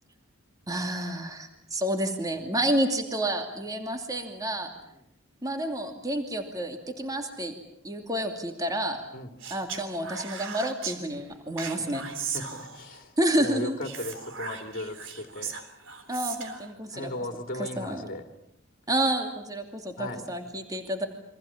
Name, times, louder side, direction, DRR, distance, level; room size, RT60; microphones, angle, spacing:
voice 1, 0.7-4.7 5.4-7.5 7.8-9.0 9.5-12.1 13.2-13.8 16.1-17.1 17.8-18.0 18.9-21.1, right 1 dB, 15° right, 5 dB, 2.6 m, -29 dB
voice 2, 4.6-5.0 9.1-9.3 12.2-13.1 13.4-15.5 16.9-18.3 20.0-20.3, left 1 dB, 45° left, 6 dB, 2.7 m, -37 dB
Speech, 9.4-11.0 11.6-13.0 13.8-16.7, right 6 dB, 60° right, 3.5 m, -37 dB
29.0 x 24.5 x 7.3 m, 0.80 s
head